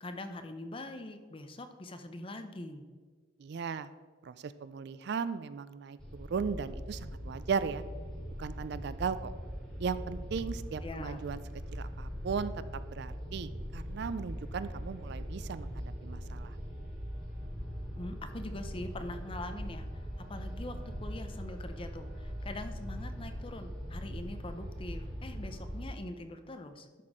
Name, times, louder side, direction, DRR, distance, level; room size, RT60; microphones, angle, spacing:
voice 1, 0.0-2.8 10.8-11.2 17.9-19.9 20.3-27.0, left 2 dB, 25° left, 8 dB, 0.6 m, -43 dB
voice 2, 3.4-3.9 4.2-7.8 8.4-9.3 9.8-11.4 11.7-12.5 12.9-16.6, right 6 dB, 55° right, 14 dB, 0.3 m, -37 dB
sound 1, 6.0-25.9, equal, 5° left, 1.8 m, -41 dB
12.0 x 4.2 x 4.9 m, 1.5 s
head